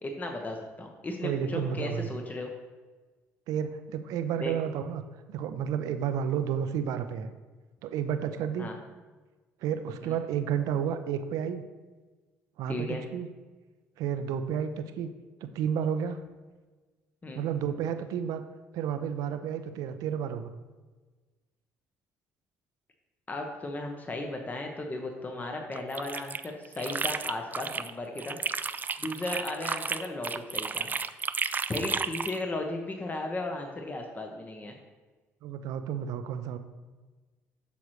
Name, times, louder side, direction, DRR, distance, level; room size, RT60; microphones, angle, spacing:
voice 1, 0.0-2.5 4.4-4.5 8.6-8.8 10.0-10.2 12.7-13.0 17.2-17.4 23.3-28.4 29.0-30.9 31.7-34.8, left 2 dB, 25° left, 3 dB, 1.0 m, -35 dB
voice 2, 1.2-2.1 3.5-5.0 5.3-7.3 7.8-8.7 9.6-11.6 12.6-13.3 14.0-15.1 15.4-16.2 17.3-18.4 18.7-20.5 35.4-36.6, right 8 dB, 75° right, 9 dB, 0.6 m, -31 dB
sound 1, 25.7-27.9 28.2-32.4, right 5 dB, 30° right, 0.4 m, -33 dB
8.4 x 6.1 x 3.2 m, 1.3 s
supercardioid pair, 65°, 6 cm